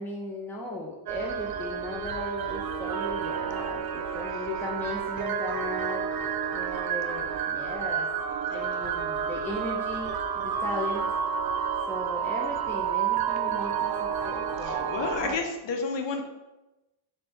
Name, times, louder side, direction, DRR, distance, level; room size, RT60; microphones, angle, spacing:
voice 1, 0.0-6.1 6.5-8.1 8.5-11.1 11.9-15.4, left 1 dB, 5° left, -2 dB, 0.5 m, -37 dB
sound 1, 1.1-15.3, right 7 dB, 50° right, 0.5 m, -30 dB
voice 2, 14.6-16.3, left 4 dB, 60° left, 5 dB, 0.8 m, -31 dB
3.4 x 3.3 x 4.2 m, 1.0 s
cardioid pair, 110°, 49 cm